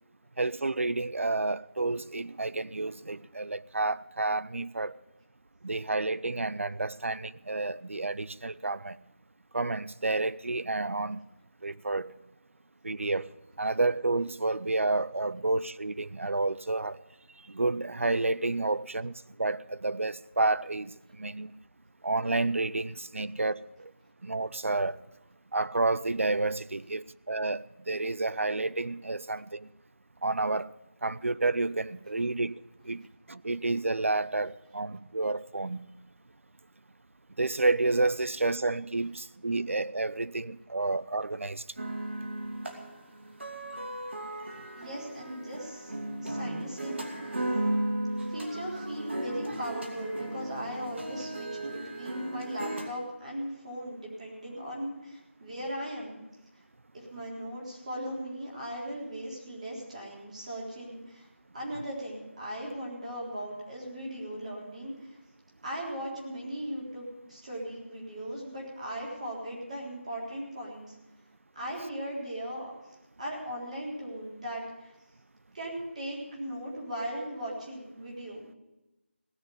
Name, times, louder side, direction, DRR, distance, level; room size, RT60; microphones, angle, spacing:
voice 1, 0.4-4.9 5.6-9.0 9.5-11.2 11.6-12.1 12.8-13.3 13.6-17.0 17.5-21.5 22.0-23.9 24.2-25.0 25.5-29.7 30.2-30.7 31.0-35.8 37.4-41.6, right 2 dB, 85° right, 0.6 m, -30 dB
sound 1, 41.8-52.9, right 1 dB, 65° right, 2.6 m, -35 dB
voice 2, 44.7-47.4 48.3-56.2 56.9-61.3 61.5-65.2 65.6-70.9 71.6-72.7 73.2-74.9 75.5-78.5, equal, 35° right, 3.8 m, -38 dB
17.5 x 6.6 x 9.9 m
figure-of-eight pair, 175°, 7 cm